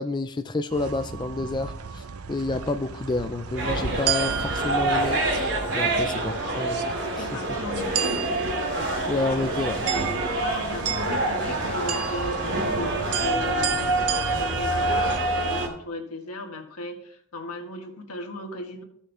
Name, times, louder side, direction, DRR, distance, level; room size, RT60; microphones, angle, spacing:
voice 1, 0.0-2.0 2.3-5.5 5.7-6.8 7.2-7.4 9.1-9.8, left 2 dB, 20° left, 8 dB, 0.3 m, -29 dB
sound 1, 0.7-15.2, right 7 dB, 85° right, 0.6 m, -33 dB
sound 2, 3.6-15.7, right 2 dB, 55° right, 2.7 m, -27 dB
voice 2, 7.2-8.1 10.4-13.8 14.4-18.8, left 1 dB, 90° left, 3 dB, 1.6 m, -36 dB
14.0 x 6.3 x 3.4 m, 0.66 s
head